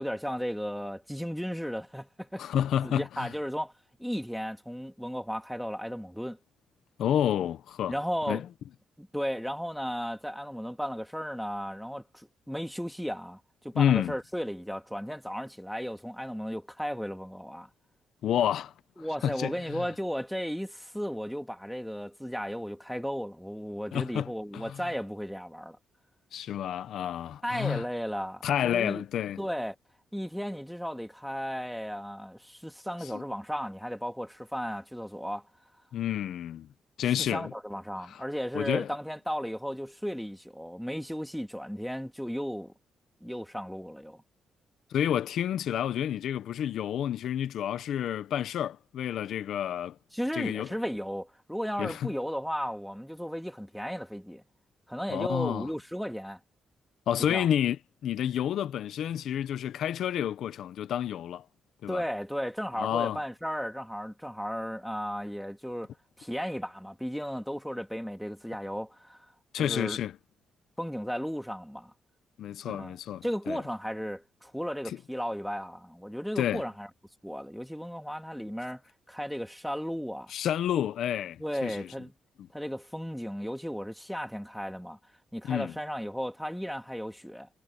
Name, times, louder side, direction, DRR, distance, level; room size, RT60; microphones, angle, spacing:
voice 1, 0.0-2.5 2.8-3.7 4.0-6.4 7.9-8.4 9.0-17.7 19.0-25.8 27.4-29.0 29.4-29.8 30.1-35.5 37.2-42.7 43.2-44.2 50.1-54.4 54.9-56.4 57.3-57.5 61.9-65.9 66.2-69.3 69.5-70.0 70.8-71.9 72.6-73.0 73.2-76.9 77.2-78.8 79.1-80.3 81.4-82.1 82.5-85.0 85.3-87.5, equal, ahead, 2.4 m, -35 dB
voice 2, 2.4-3.3 7.0-8.0 8.3-8.5 13.7-14.1 18.2-18.7 19.0-19.9 23.9-24.8 26.3-27.9 28.4-29.4 33.1-33.2 35.9-36.7 37.0-37.5 38.0-38.2 38.5-38.9 44.9-50.0 50.3-50.7 51.8-52.1 55.1-55.7 57.1-61.4 61.8-62.0 62.7-63.2 69.5-70.1 72.4-73.6 74.8-75.0 76.4-76.6 80.3-81.9 85.4-85.7, left 10 dB, 75° left, 0.8 m, -30 dB
cardioid pair, 115°, 0 cm